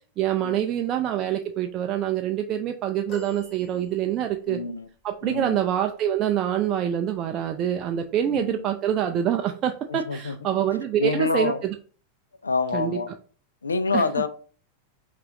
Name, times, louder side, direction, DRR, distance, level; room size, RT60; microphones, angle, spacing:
voice 1, 0.2-4.6 5.0-11.7 12.7-13.0 13.9-14.0, right 10 dB, 35° right, 0.4 m, -25 dB
sound 1, 3.1-4.5 5.2-5.3, left 3 dB, 30° left, 2.4 m, -46 dB
voice 2, 4.5-4.9 5.2-5.6 8.3-8.6 9.9-10.3 11.0-11.6 12.4-13.1 13.6-14.3, left 4 dB, 75° left, 0.4 m, -27 dB
5.4 x 2.4 x 3.9 m
figure-of-eight pair, 90°, 0 cm